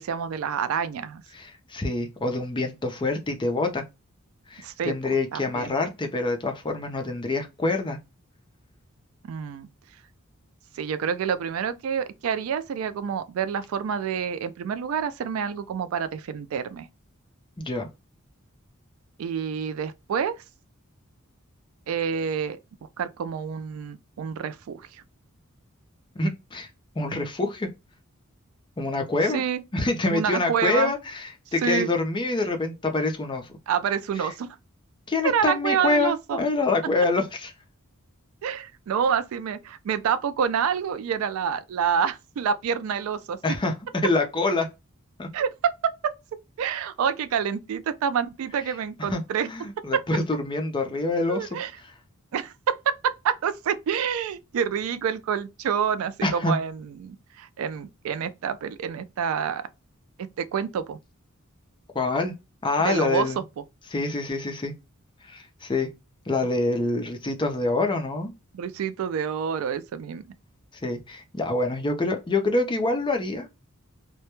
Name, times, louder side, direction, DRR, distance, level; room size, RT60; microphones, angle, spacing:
voice 1, 0.0-1.2 4.6-5.7 9.2-9.7 10.7-16.9 19.2-20.4 21.9-22.6 23.0-24.9 29.3-29.6 30.1-30.9 31.6-31.9 33.7-34.6 35.2-36.4 38.4-43.6 45.3-46.1 46.6-49.5 49.9-50.0 51.3-51.7 52.3-59.7 60.4-61.0 62.8-63.3 66.4-66.5 68.5-70.2, right 7 dB, 70° right, 0.3 m, -27 dB
voice 2, 1.3-3.8 4.5-8.0 17.6-17.9 26.2-26.7 27.0-27.7 28.8-29.4 29.7-33.5 35.1-37.5 43.4-44.7 45.2-45.3 49.0-49.2 49.5-51.5 56.2-56.6 61.9-62.3 62.6-63.4 63.9-64.7 65.3-65.9 66.3-68.3 70.8-73.7, left 2 dB, 20° left, 0.5 m, -26 dB
2.1 x 2.1 x 2.9 m
head